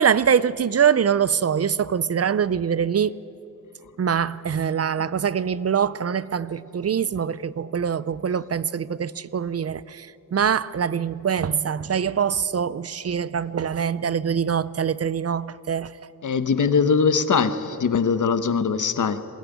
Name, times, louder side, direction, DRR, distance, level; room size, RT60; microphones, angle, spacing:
voice 1, 0.0-3.1 4.0-15.9, right 7 dB, 45° right, 0.5 m, -24 dB
voice 2, 16.2-19.2, left 5 dB, 65° left, 1.1 m, -21 dB
21.0 x 17.5 x 9.3 m
wide cardioid pair, 140°, 33 cm